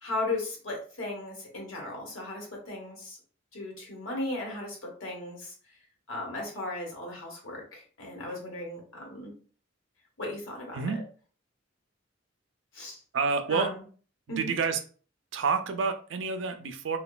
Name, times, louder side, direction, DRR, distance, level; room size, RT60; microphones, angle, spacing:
voice 1, 0.0-3.2 3.5-5.5 6.1-9.3 10.2-10.9 12.7-13.0 13.5-13.8 14.3-14.5, left 2 dB, 80° left, -1 dB, 1.0 m, -36 dB
voice 2, 13.1-13.7 14.3-14.8 15.3-17.0, right 5 dB, 65° right, 7 dB, 0.4 m, -28 dB
3.0 x 2.2 x 2.2 m, 0.41 s
head